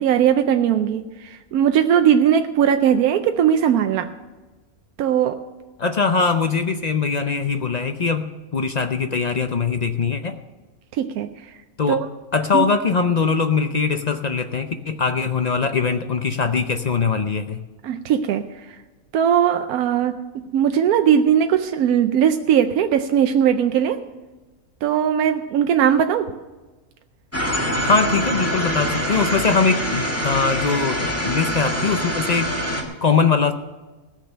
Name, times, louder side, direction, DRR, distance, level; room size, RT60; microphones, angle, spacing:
voice 1, 0.0-4.1 5.0-5.4 11.0-11.3 11.9-12.1 12.5-12.7 17.8-18.5 19.1-24.0 24.8-26.3, right 9 dB, 85° right, 7 dB, 1.1 m, -19 dB
voice 2, 5.8-10.4 11.8-12.0 12.3-17.6 27.8-32.5 33.0-33.5, left 5 dB, 50° left, 8 dB, 0.5 m, -21 dB
sound 1, 27.3-32.8, equal, 10° left, 1.6 m, -24 dB
16.5 x 6.6 x 6.6 m, 1.2 s
omnidirectional pair, 1.5 m